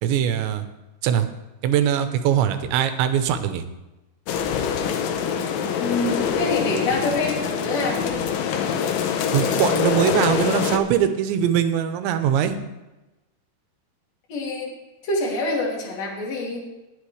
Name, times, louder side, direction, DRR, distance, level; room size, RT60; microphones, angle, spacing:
voice 1, 0.0-0.6 1.0-1.3 1.6-3.6 9.3-12.6, right 9 dB, 90° right, 8 dB, 3.2 m, -21 dB
sound 1, 4.3-10.8, left 7 dB, 90° left, 1.8 m, -24 dB
voice 2, 5.8-8.2 14.3-14.7 15.0-16.6, left 2 dB, 40° left, -3 dB, 3.5 m, -26 dB
20.5 x 8.3 x 3.3 m, 1.0 s
omnidirectional pair, 5.1 m